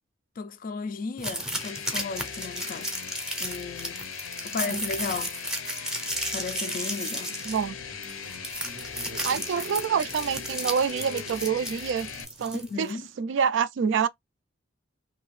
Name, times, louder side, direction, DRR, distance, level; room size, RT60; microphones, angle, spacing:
voice 1, 0.4-2.9 3.4-4.0 4.4-5.4 6.3-7.4 9.5-9.6 12.5-13.1, left 4 dB, 45° left, 0.3 m, -35 dB
sound 1, 1.2-12.9, equal, 5° right, 0.6 m, -34 dB
sound 2, 1.6-12.2, left 7 dB, 90° left, 0.6 m, -39 dB
voice 2, 7.5-7.8 9.2-12.1 12.4-12.9 13.2-14.1, right 7 dB, 65° right, 0.3 m, -27 dB
sound 3, 7.7-12.7, right 3 dB, 85° right, 0.7 m, -46 dB
2.7 x 2.4 x 3.1 m
head